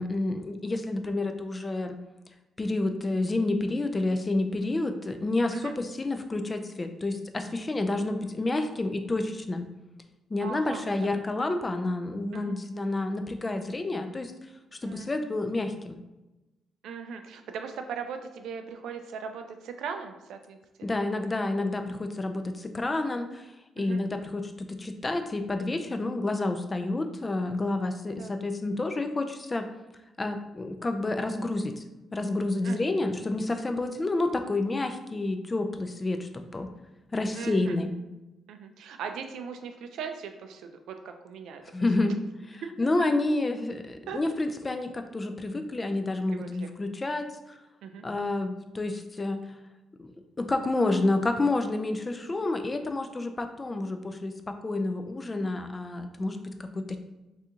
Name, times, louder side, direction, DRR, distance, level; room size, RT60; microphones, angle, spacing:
voice 1, 0.0-2.0 2.6-9.7 10.3-14.3 14.8-16.0 20.8-23.5 23.8-29.7 30.2-31.8 32.1-36.7 37.1-37.9 41.7-42.2 42.4-47.6 48.0-49.4 50.0-50.1 50.4-57.0, left 2 dB, 25° left, 7 dB, 0.3 m, -29 dB
voice 2, 10.4-11.1 12.3-12.5 14.8-15.1 16.8-20.9 23.8-24.0 28.1-28.3 32.6-32.9 37.3-37.8 38.5-41.6 42.0-42.1 42.6-42.7 44.1-44.2 46.3-46.7 47.8-48.1, right 6 dB, 80° right, 6 dB, 0.3 m, -39 dB
2.7 x 2.4 x 3.6 m, 1.0 s
cardioid pair, 90°, 0 cm